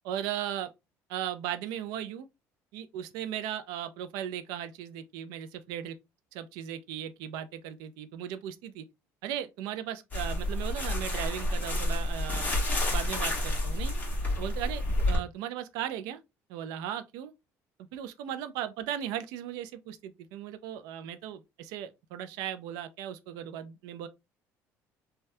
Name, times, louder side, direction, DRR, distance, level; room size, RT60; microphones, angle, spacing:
voice 1, 0.0-0.7 1.1-2.3 2.7-6.0 6.3-8.8 9.2-12.6 12.9-13.9 14.4-16.2 16.5-17.3 17.9-24.1, right 10 dB, 90° right, 0.4 m, -37 dB
sound 1, 10.1-15.2, left 1 dB, 25° left, 1.4 m, -29 dB
3.3 x 2.2 x 2.6 m
cardioid pair, 120°, 6 cm